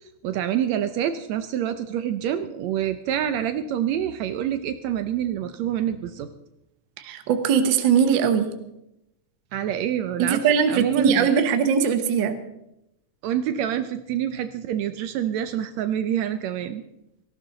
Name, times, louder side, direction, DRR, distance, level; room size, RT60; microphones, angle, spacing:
voice 1, 0.0-6.3 9.5-11.4 13.2-16.8, right 10 dB, 75° right, 10 dB, 1.8 m, -27 dB
voice 2, 7.0-8.6 10.2-12.4, right 7 dB, 55° right, 8 dB, 1.4 m, -20 dB
18.0 x 16.0 x 3.9 m, 0.86 s
omnidirectional pair, 3.4 m